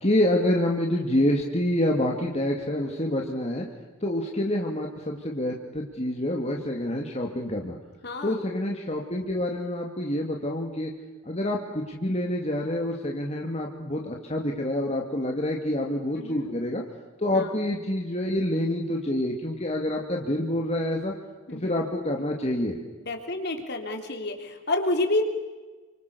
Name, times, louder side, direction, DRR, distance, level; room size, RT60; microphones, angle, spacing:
voice 1, 0.0-3.7 4.0-7.8 8.2-10.9 11.3-16.8 17.2-21.1 21.6-22.8, left 1 dB, 30° left, 0 dB, 2.4 m, -27 dB
voice 2, 8.0-8.4 16.2-16.5 17.3-17.6 21.5-21.7 23.0-25.2, left 2 dB, 50° left, 4 dB, 3.7 m, -29 dB
29.5 x 25.5 x 7.0 m, 1.3 s
head